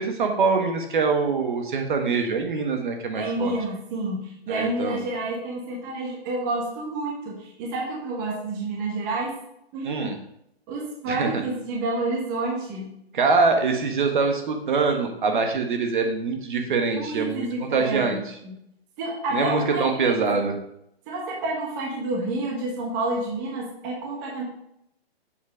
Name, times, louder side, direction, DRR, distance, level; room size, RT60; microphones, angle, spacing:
voice 1, 0.0-3.5 4.5-5.0 9.8-10.2 11.1-11.4 13.1-18.2 19.3-20.5, right 4 dB, 50° right, 4 dB, 1.3 m, -24 dB
voice 2, 3.1-9.3 9.7-10.0 10.7-12.9 16.7-18.5 19.0-19.8 20.1-20.4 21.1-24.4, right 2 dB, 20° right, -2 dB, 1.1 m, -29 dB
7.1 x 4.7 x 5.0 m, 0.76 s
hypercardioid pair, 165°, 31 cm